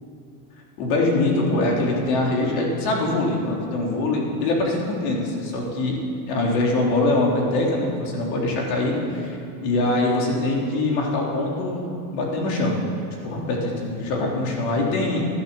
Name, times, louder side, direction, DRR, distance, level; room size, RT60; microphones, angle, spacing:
voice 1, 0.8-6.0 6.3-12.8 13.2-15.2, left 2 dB, 60° left, -1 dB, 3.8 m, -23 dB
14.5 x 11.5 x 7.2 m, 2.7 s
supercardioid pair, 150°, 49 cm